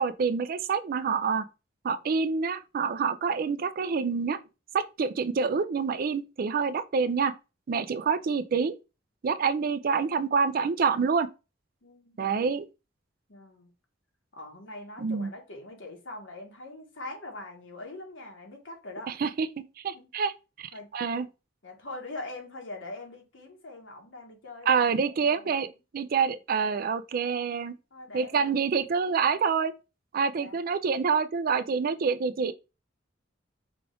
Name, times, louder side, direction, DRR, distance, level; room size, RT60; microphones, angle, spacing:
voice 1, 0.0-1.4 1.8-4.4 4.7-7.3 7.7-8.7 9.2-11.3 12.2-12.7 15.0-15.3 19.2-19.5 19.8-21.3 24.7-25.7 25.9-27.8 28.1-29.7 30.1-32.5, right 5 dB, 50° right, 0.4 m, -27 dB
voice 2, 11.8-12.4 13.3-13.7 14.3-19.1 19.9-20.1 20.7-20.9 21.6-25.7 27.9-28.5 30.3-30.6, left 2 dB, 80° left, 1.4 m, -43 dB
4.9 x 2.4 x 3.3 m
head